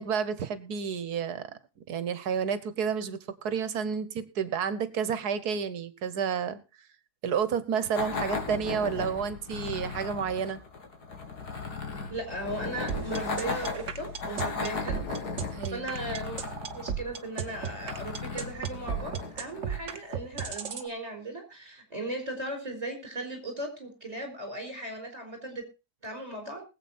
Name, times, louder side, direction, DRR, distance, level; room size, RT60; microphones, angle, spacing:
voice 1, 0.0-1.5 1.9-6.6 7.2-10.6 15.5-15.9, right 7 dB, 80° right, 14 dB, 1.6 m, -30 dB
sound 1, 7.9-20.1, left 4 dB, 85° left, 2.6 m, -36 dB
voice 2, 12.1-15.0 15.6-16.4 16.7-25.6 26.0-26.6, right 1 dB, 25° right, 4 dB, 4.4 m, -37 dB
sound 2, 12.9-20.9, right 7 dB, 55° right, 1.4 m, -34 dB
20.0 x 8.1 x 4.2 m, 0.29 s
omnidirectional pair, 1.7 m